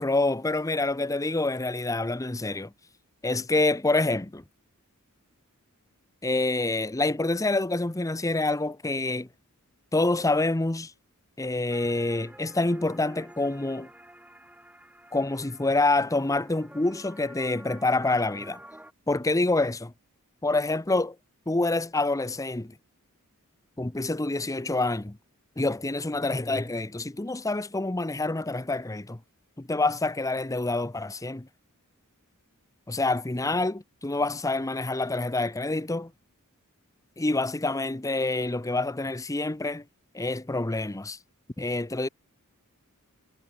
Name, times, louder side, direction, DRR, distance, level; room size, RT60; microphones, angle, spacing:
voice 1, 0.0-2.7 3.2-4.4 6.2-9.3 9.9-10.9 11.4-13.9 15.1-18.6 19.1-19.9 20.4-21.1 21.5-22.7 23.8-25.2 25.6-29.2 29.6-31.5 32.9-36.1 37.2-39.8 40.1-41.2 41.6-42.1, left 2 dB, 15° left, 0.7 m, -27 dB
sound 1, 11.7-18.9, right 1 dB, 5° right, 4.0 m, -49 dB
head